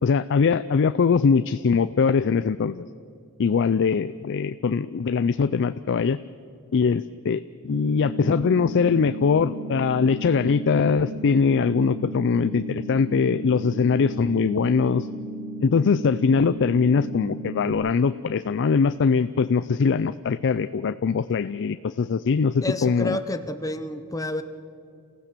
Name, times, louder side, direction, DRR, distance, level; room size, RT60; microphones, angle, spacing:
voice 1, 0.0-2.8 3.4-6.2 6.7-15.1 15.6-23.2, left 5 dB, 55° left, 14 dB, 0.4 m, -22 dB
sound 1, 7.7-17.7, right 1 dB, 60° right, 2.8 m, -35 dB
voice 2, 22.6-24.4, left 1 dB, 15° left, 9 dB, 0.8 m, -30 dB
28.5 x 15.5 x 6.7 m, 2.4 s
head